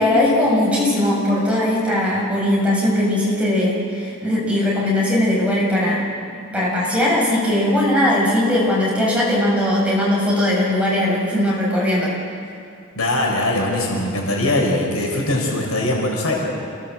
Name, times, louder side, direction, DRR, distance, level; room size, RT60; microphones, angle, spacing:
voice 1, 0.0-6.1 6.5-12.1, left 1 dB, 5° right, -5 dB, 7.3 m, -19 dB
voice 2, 13.0-16.4, left 1 dB, 90° left, -1 dB, 6.1 m, -21 dB
28.0 x 19.0 x 7.8 m, 2.4 s
head